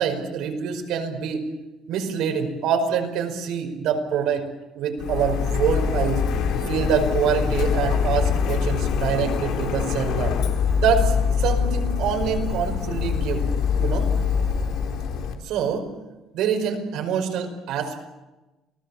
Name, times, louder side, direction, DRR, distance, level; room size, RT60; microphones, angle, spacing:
voice 1, 0.0-1.5 1.9-4.5 4.8-6.2 6.7-10.3 10.8-13.5 13.8-14.1 15.4-15.9 16.3-18.0, right 7 dB, 75° right, 4 dB, 5.2 m, -25 dB
Printer, 5.0-15.3, left 6 dB, 70° left, 3.7 m, -24 dB
29.0 x 19.0 x 7.3 m, 1.1 s
cardioid pair, 155°, 0 cm